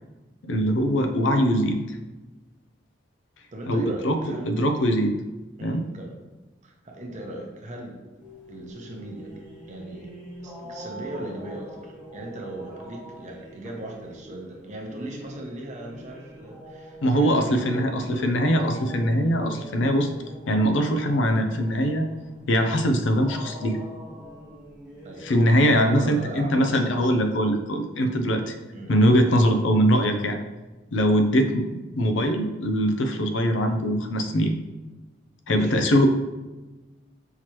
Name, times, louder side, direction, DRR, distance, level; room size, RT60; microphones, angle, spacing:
voice 1, 0.5-2.0 3.7-4.2 4.4-5.2 5.6-5.9 17.0-20.1 20.5-22.1 22.5-23.8 25.2-28.6 28.9-30.4 30.9-34.5 35.5-36.1, equal, 75° left, 5 dB, 0.5 m, -22 dB
voice 2, 3.5-4.6 5.6-6.2 6.6-8.0 8.5-10.1 10.4-18.4 25.0-25.3 25.7-27.1 28.7-28.9 35.5-35.8, right 1 dB, 40° right, 0 dB, 0.8 m, -38 dB
sound 1, 8.2-26.8, equal, 5° right, 1.1 m, -44 dB
5.6 x 3.0 x 3.1 m, 1.2 s
head